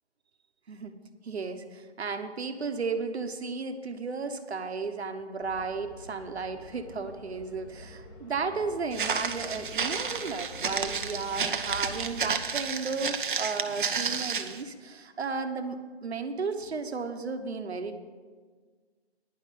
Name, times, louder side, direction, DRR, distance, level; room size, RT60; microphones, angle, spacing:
voice 1, 0.7-1.0 1.2-18.0, right 4 dB, 70° right, 7 dB, 1.1 m, -34 dB
sound 1, 5.4-12.5, equal, 20° left, 1.0 m, -47 dB
Walk footsteps, 8.9-14.6, right 6 dB, 50° right, 0.7 m, -31 dB
10.5 x 5.7 x 8.4 m, 1.5 s
figure-of-eight pair, 155°, 33 cm